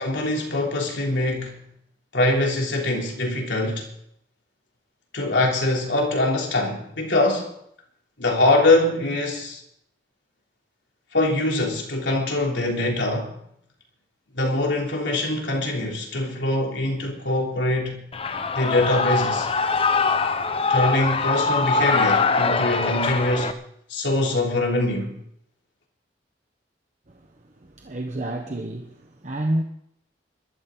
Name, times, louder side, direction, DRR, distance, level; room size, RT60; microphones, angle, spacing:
voice 1, 0.0-1.6 2.1-3.9 5.1-7.5 8.2-9.6 11.1-13.4 14.3-18.0 18.5-19.5 20.7-23.5 23.9-25.1, left 2 dB, 80° left, 3.4 m, -23 dB
Shout / Cheering, 18.1-23.5, left 4 dB, 30° left, 0.8 m, -23 dB
voice 2, 27.6-29.6, right 1 dB, 40° right, 1.1 m, -29 dB
21.5 x 12.5 x 3.9 m
head